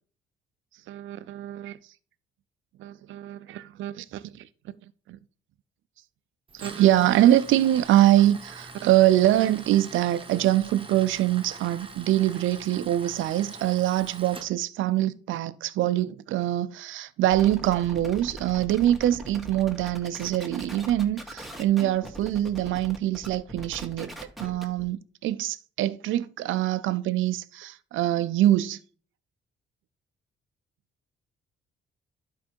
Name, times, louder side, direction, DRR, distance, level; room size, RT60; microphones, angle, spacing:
voice 1, 0.9-1.8 2.8-4.3 5.1-5.2 6.5-24.1 24.4-28.8, right 13 dB, 80° right, 0.5 m, -24 dB
Tools, 6.5-14.5, right 3 dB, 25° right, 1.3 m, -43 dB
sound 1, 17.3-24.8, right 1 dB, ahead, 1.7 m, -41 dB
11.5 x 4.7 x 4.5 m
cardioid pair, 90°, 20 cm